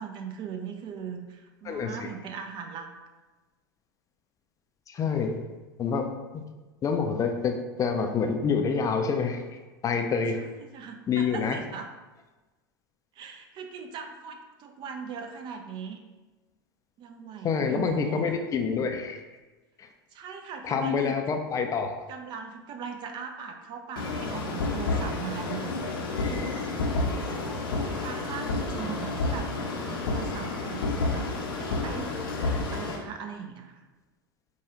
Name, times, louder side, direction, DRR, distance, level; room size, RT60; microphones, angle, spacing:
voice 1, 0.0-2.9 10.4-11.9 13.1-16.0 17.0-18.2 20.1-21.1 22.1-25.7 26.1-26.6 27.6-29.5 29.8-32.1 32.5-33.9, right 6 dB, 40° right, 4 dB, 0.5 m, -39 dB
voice 2, 1.7-2.1 4.9-5.4 5.8-6.1 6.3-6.4 6.8-9.4 9.8-10.4 11.1-11.6 17.4-19.2 19.8-19.9 20.6-21.9, left 5 dB, 30° left, 5 dB, 0.4 m, -27 dB
sound 1, 24.0-33.0, left 3 dB, 80° left, 0.7 m, -30 dB
4.6 x 2.3 x 2.9 m, 1.2 s
hypercardioid pair, 90°, 12 cm